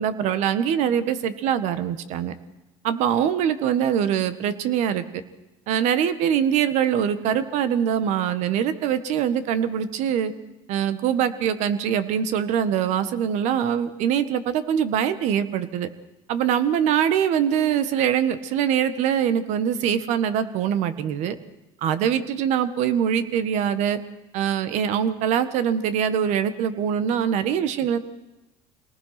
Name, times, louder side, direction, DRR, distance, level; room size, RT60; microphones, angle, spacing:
voice 1, 0.0-2.3 2.8-5.0 5.7-10.3 10.7-15.9 16.3-21.3 21.8-24.0 24.3-28.0, right 9 dB, 70° right, 12 dB, 1.6 m, -23 dB
26.0 x 19.0 x 6.0 m, 1.0 s
cardioid pair, 110°, 12 cm